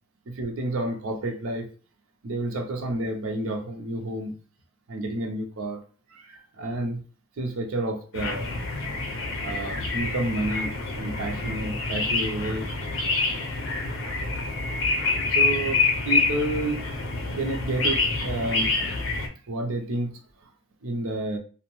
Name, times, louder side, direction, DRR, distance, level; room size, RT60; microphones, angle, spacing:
voice 1, 0.3-1.7 2.2-4.3 4.9-5.8 6.1-7.0 7.4-8.6 9.4-12.7 15.3-16.8 17.3-18.7 19.5-20.2 20.8-21.4, right 2 dB, 85° right, 0.6 m, -30 dB
sound 1, 8.1-19.3, left 3 dB, 70° left, 0.6 m, -27 dB
2.6 x 2.1 x 3.0 m
head